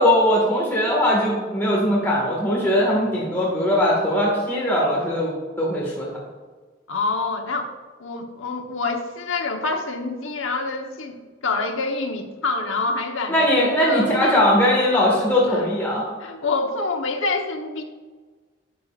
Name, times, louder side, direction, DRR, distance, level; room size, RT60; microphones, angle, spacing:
voice 1, 0.0-6.1 13.3-16.1, left 1 dB, 10° left, -5 dB, 1.8 m, -20 dB
voice 2, 6.9-7.7 8.0-11.2 11.4-14.4 15.5-15.8 16.2-17.8, left 3 dB, 85° left, 4 dB, 1.1 m, -27 dB
12.0 x 8.1 x 2.5 m, 1.4 s
head